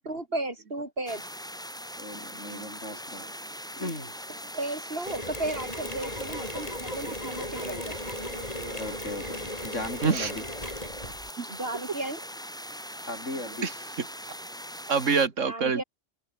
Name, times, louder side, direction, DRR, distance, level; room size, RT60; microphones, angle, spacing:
voice 1, 0.0-1.3 4.5-8.0 10.1-10.3 11.5-12.2 15.4-15.8, right 2 dB, 50° right, 4.6 m, -34 dB
sound 1, 1.1-15.3, equal, 5° left, 7.1 m, -41 dB
voice 2, 2.0-3.3 3.8-4.0 8.7-10.4 13.1-13.7, left 1 dB, 80° left, 8.2 m, -37 dB
Mechanisms, 5.1-11.3, left 1 dB, 30° left, 6.1 m, -37 dB
voice 3, 8.2-8.8 10.0-10.3 11.4-11.5 13.6-13.7 14.9-15.8, right 5 dB, 90° right, 2.1 m, -27 dB
omnidirectional pair, 1.3 m